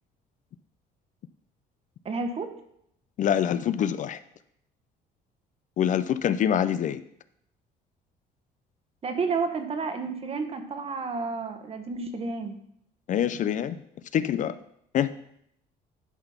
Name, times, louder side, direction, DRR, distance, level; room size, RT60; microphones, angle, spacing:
voice 1, 2.0-2.5 9.0-12.5, right 4 dB, 35° right, 7 dB, 1.2 m, -31 dB
voice 2, 3.2-4.2 5.8-7.0 13.1-13.8 14.1-14.5 14.9-15.1, left 9 dB, 50° left, 13 dB, 0.4 m, -25 dB
11.0 x 4.0 x 5.7 m, 0.74 s
cardioid pair, 110°, 17 cm